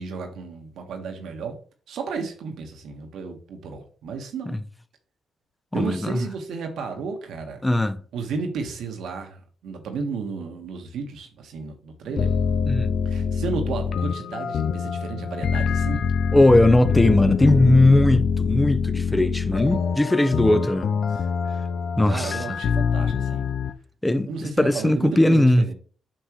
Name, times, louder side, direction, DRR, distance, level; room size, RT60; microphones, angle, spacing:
voice 1, 0.0-1.6 1.9-4.6 5.7-7.6 8.1-12.3 13.0-16.0 20.4-21.1 22.1-23.5 24.2-25.7, right 5 dB, 75° right, 1.6 m, -33 dB
voice 2, 5.7-6.2 7.6-8.0 12.6-12.9 16.3-20.9 22.0-22.4 24.0-25.6, left 1 dB, 15° left, 1.0 m, -19 dB
sound 1, 12.2-23.7, left 6 dB, 65° left, 0.6 m, -24 dB
8.9 x 5.5 x 3.2 m
hypercardioid pair, 50°, 0 cm